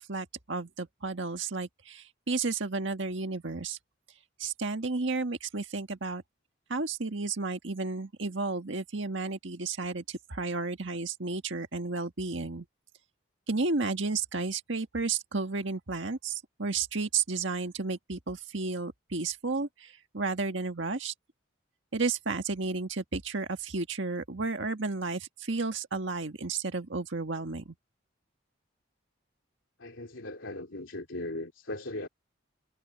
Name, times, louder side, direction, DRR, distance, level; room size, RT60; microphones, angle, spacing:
voice 1, 0.0-3.8 4.4-6.2 6.7-12.6 13.5-21.1 21.9-27.7, right 3 dB, 70° right, 1.6 m, -32 dB
voice 2, 29.8-32.1, left 2 dB, 75° left, 3.0 m, -38 dB
head